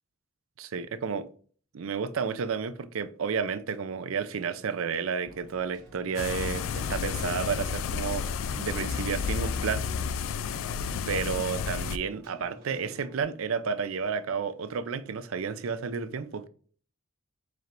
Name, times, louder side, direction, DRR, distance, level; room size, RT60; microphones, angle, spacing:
voice 1, 0.6-1.3 1.7-8.3 8.6-9.8 11.1-16.5, right 6 dB, 90° right, 0.5 m, -31 dB
Keyboard (musical), 5.2-13.2, right 1 dB, 55° right, 1.3 m, -51 dB
sound 1, 6.1-12.0, left 6 dB, 80° left, 0.3 m, -31 dB
4.8 x 4.3 x 2.5 m
head